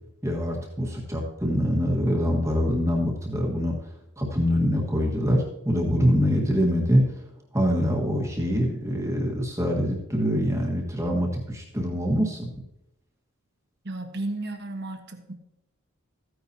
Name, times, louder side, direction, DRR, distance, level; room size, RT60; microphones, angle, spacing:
voice 1, 0.2-3.8 4.2-7.0 7.5-12.5, equal, 15° right, -1 dB, 1.5 m, -24 dB
voice 2, 13.8-15.3, right 2 dB, 50° right, 5 dB, 1.3 m, -33 dB
14.5 x 9.6 x 2.8 m, 0.88 s
head